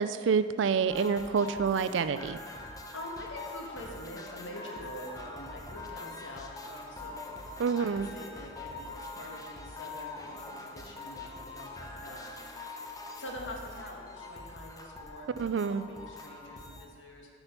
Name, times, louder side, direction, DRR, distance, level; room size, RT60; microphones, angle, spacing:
voice 1, 0.0-2.4 7.6-8.1 15.4-15.8, right 6 dB, 70° right, 13 dB, 0.4 m, -27 dB
sound 1, 0.9-16.9, left 3 dB, 20° left, 0.8 m, -44 dB
voice 2, 2.9-12.2 13.1-15.3 15.6-17.3, left 1 dB, 80° left, 0 dB, 1.5 m, -45 dB
8.5 x 6.7 x 5.8 m, 2.3 s
head